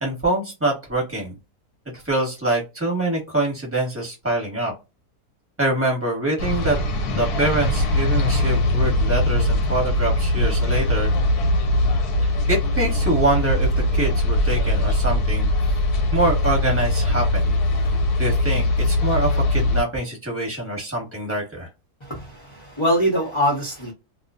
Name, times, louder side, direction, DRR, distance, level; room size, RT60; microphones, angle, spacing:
voice 1, 0.0-1.4 2.0-4.7 5.6-6.8 7.1-11.1 12.5-15.8 16.1-17.5 18.2-21.7, right 1 dB, 10° right, 1.1 m, -25 dB
sound 1, 6.4-19.8, left 1 dB, 85° left, 1.3 m, -21 dB
voice 2, 22.0-23.9, equal, 25° left, 0.6 m, -23 dB
2.6 x 2.4 x 2.4 m
omnidirectional pair, 1.7 m